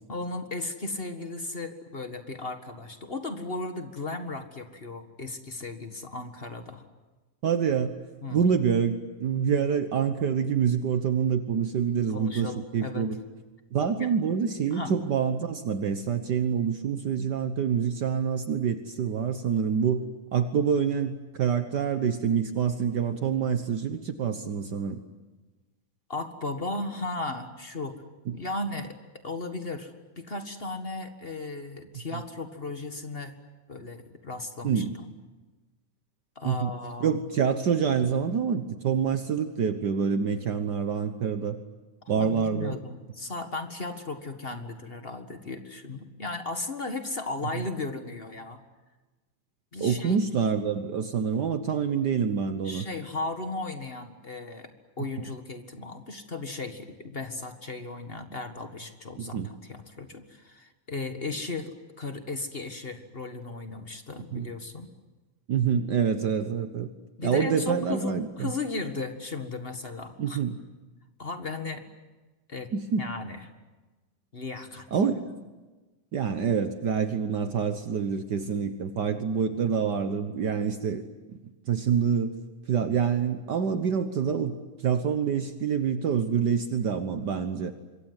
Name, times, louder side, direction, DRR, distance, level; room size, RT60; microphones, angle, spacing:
voice 1, 0.1-6.8 8.2-8.5 12.1-13.1 14.0-14.1 14.7-14.9 26.1-28.0 28.3-29.0 29.2-33.3 33.7-35.1 36.3-37.2 42.1-48.6 49.7-50.2 52.6-54.7 55.0-59.4 59.7-64.9 67.2-70.4 71.2-71.8 72.5-72.7 73.0-73.5 74.3-74.9, left 3 dB, 30° left, 7 dB, 1.1 m, -36 dB
voice 2, 7.4-7.9 8.3-13.2 13.7-20.0 20.3-25.0 28.3-28.4 34.6-34.9 36.4-36.7 37.0-41.6 42.1-42.8 47.5-47.6 49.8-52.8 59.2-59.5 64.3-64.5 65.5-66.9 67.2-68.5 70.2-70.6 72.7-73.1 74.9-75.2 76.1-81.0 81.7-82.4 82.7-87.7, right 7 dB, 75° right, 9 dB, 0.9 m, -26 dB
26.0 x 23.5 x 9.7 m, 1.2 s
omnidirectional pair, 3.6 m